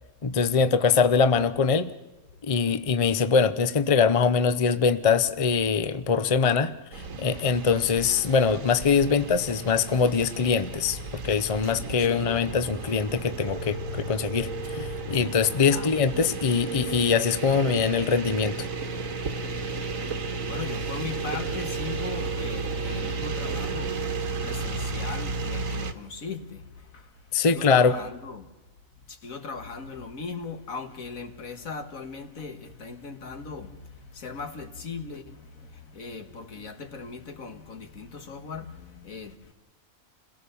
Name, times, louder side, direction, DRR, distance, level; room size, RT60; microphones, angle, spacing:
voice 1, 0.2-1.9 2.5-6.7 7.2-11.0 11.2-18.7 27.3-28.0, left 5 dB, 30° left, 0.8 m, -23 dB
sound 1, 6.9-25.9, right 3 dB, 75° right, 1.8 m, -33 dB
voice 2, 12.0-12.4 15.7-16.4 19.7-24.0 24.4-26.6 26.9-27.1 27.3-28.5 29.1-39.5, left 4 dB, 80° left, 2.1 m, -39 dB
28.5 x 17.5 x 7.1 m
omnidirectional pair, 1.4 m